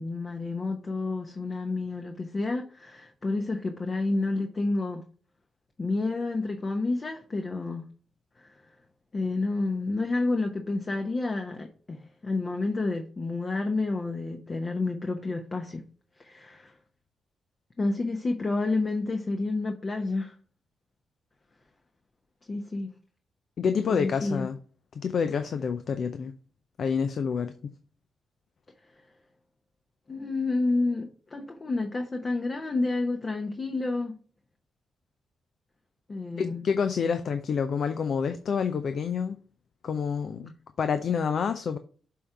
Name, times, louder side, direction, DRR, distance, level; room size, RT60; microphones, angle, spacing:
voice 1, 0.0-5.0 5.8-7.8 8.4-8.5 9.1-15.8 16.2-16.7 17.8-20.3 22.5-22.9 23.9-24.5 30.1-34.1 36.1-36.6, left 3 dB, 40° left, 1.0 m, -29 dB
voice 2, 23.6-24.6 24.9-26.3 26.8-27.7 36.4-39.4 39.8-40.5 40.8-41.8, left 6 dB, 60° left, 0.5 m, -28 dB
6.9 x 3.7 x 4.8 m
hypercardioid pair, 40°, 0 cm